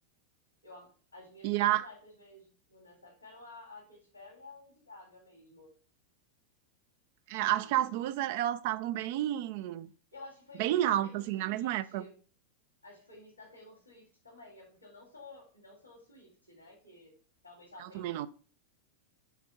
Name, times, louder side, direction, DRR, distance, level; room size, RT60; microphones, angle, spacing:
voice 1, 0.6-5.7 7.5-8.0 10.1-12.2 12.8-17.1 17.4-18.3, left 2 dB, 85° left, 2.5 m, -53 dB
voice 2, 1.4-1.9 7.3-9.9 10.6-12.0 17.8-18.3, right 13 dB, 50° right, 0.4 m, -30 dB
5.7 x 4.2 x 5.7 m
figure-of-eight pair, 90°, 0 cm